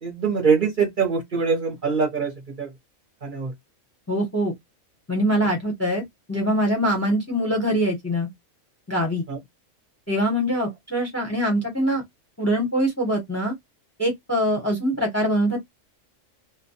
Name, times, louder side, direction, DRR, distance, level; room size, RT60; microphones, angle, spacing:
voice 1, 0.0-2.7 3.2-3.5 9.3-9.4, right 5 dB, 50° right, 0.7 m, -23 dB
voice 2, 4.1-4.5 5.1-8.3 8.9-9.3 10.1-12.0 12.4-13.5 14.0-15.6, equal, 15° left, 0.6 m, -23 dB
2.2 x 2.1 x 2.6 m
omnidirectional pair, 1.3 m